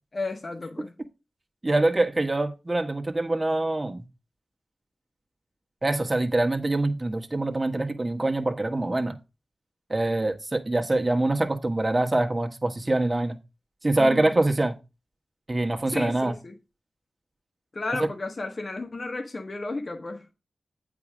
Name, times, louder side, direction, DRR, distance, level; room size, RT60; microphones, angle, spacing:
voice 1, 0.1-0.9 13.9-14.4 15.9-16.5 17.7-20.3, left 2 dB, 50° left, 1.6 m, -33 dB
voice 2, 1.6-4.0 5.8-9.2 9.9-13.4 13.8-14.8 15.5-16.4, right 2 dB, 30° right, 1.7 m, -24 dB
8.5 x 5.0 x 5.1 m
cardioid pair, 40°, 0 cm